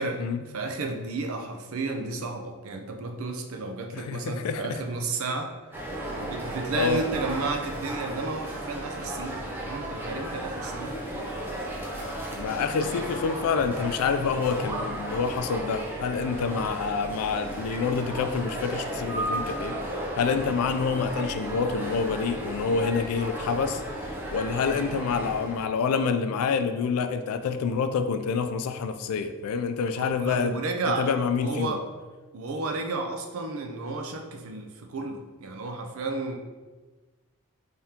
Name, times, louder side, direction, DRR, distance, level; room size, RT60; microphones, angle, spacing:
voice 1, 0.5-5.5 6.2-11.3 12.8-13.1 24.8-25.1 30.0-31.8 32.3-36.4, right 3 dB, 70° right, 5 dB, 0.5 m, -32 dB
voice 2, 3.9-4.8 6.7-7.0 12.3-19.8 20.2-23.8 24.3-30.6 30.9-31.8, left 5 dB, 85° left, 9 dB, 0.3 m, -27 dB
sound 1, 5.7-25.6, right 1 dB, 10° right, 0.5 m, -34 dB
3.5 x 3.5 x 2.8 m, 1.3 s
head